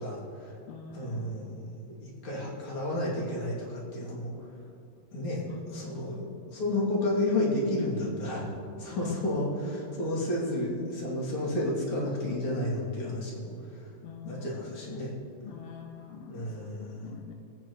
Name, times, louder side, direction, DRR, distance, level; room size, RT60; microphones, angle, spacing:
voice 1, 0.0-0.5 0.9-4.3 5.1-8.5 8.8-13.5 14.3-15.1 16.3-17.1, left 1 dB, 40° left, -6 dB, 3.4 m, -31 dB
voice 2, 0.7-1.4 5.5-6.0 8.9-9.3 14.0-14.9 15.4-17.3, left 7 dB, 85° left, 2 dB, 2.3 m, -45 dB
24.0 x 8.9 x 3.2 m, 2.7 s
omnidirectional pair, 3.9 m